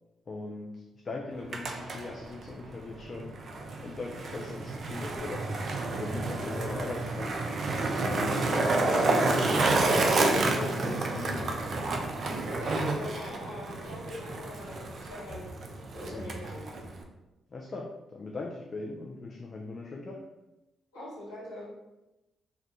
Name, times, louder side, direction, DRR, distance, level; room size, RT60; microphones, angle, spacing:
voice 1, 0.3-3.3 3.8-7.4 8.0-8.7 9.2-10.2 10.5-11.8 16.1-16.3 17.5-20.2, left 3 dB, 45° left, 0 dB, 0.3 m, -39 dB
Skateboard, 1.3-17.0, right 2 dB, 50° right, 0.3 m, -30 dB
voice 2, 12.4-15.6 15.9-16.9 20.9-21.7, left 1 dB, 85° left, -11 dB, 1.1 m, -42 dB
2.3 x 2.2 x 2.7 m, 0.98 s
hypercardioid pair, 40°, 0 cm